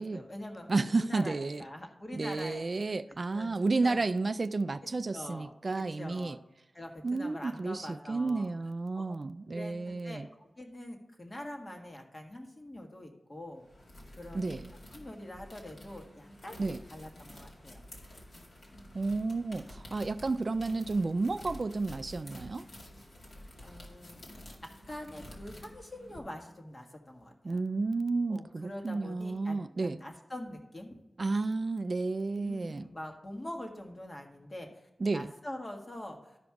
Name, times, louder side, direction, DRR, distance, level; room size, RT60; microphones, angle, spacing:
voice 1, 0.0-2.6 3.3-3.5 3.8-4.0 5.1-6.4 6.7-8.5 8.9-9.2 9.5-13.6 14.2-14.6 14.9-16.6 16.9-17.8 23.6-24.2 24.6-27.6 28.3-31.0 32.4-36.4, left 1 dB, 35° left, 1.6 m, -44 dB
voice 2, 0.7-1.6 2.1-6.4 7.0-10.3 14.3-14.7 16.6-16.8 18.9-22.6 27.4-30.0 31.2-32.9 35.0-35.3, right 3 dB, 45° right, 0.3 m, -31 dB
sound 1, 13.6-26.2, left 1 dB, 65° left, 2.1 m, -50 dB
12.5 x 5.2 x 4.8 m
wide cardioid pair, 85°, 0 cm